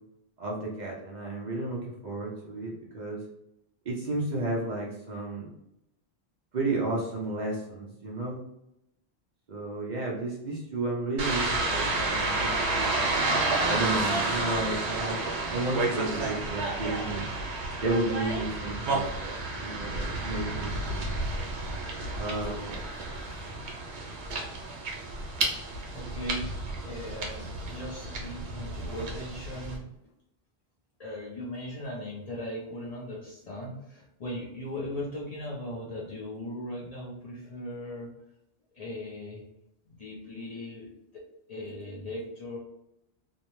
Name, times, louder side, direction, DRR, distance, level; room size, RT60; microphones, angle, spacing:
voice 1, 0.4-3.2 3.9-5.5 6.5-8.4 9.5-12.9 13.7-15.2 15.5-17.3 17.8-19.4 19.6-21.1 22.2-22.8, right 2 dB, 55° right, -4 dB, 0.6 m, -32 dB
sound 1, 11.2-29.8, right 2 dB, 85° right, 0.9 m, -31 dB
voice 2, 25.3-25.6 25.9-26.4 26.8-29.9 31.0-38.1 38.7-39.4 39.9-41.2 41.5-42.6, left 1 dB, 50° left, -4 dB, 0.5 m, -38 dB
2.5 x 2.0 x 3.0 m, 0.83 s
omnidirectional pair, 1.1 m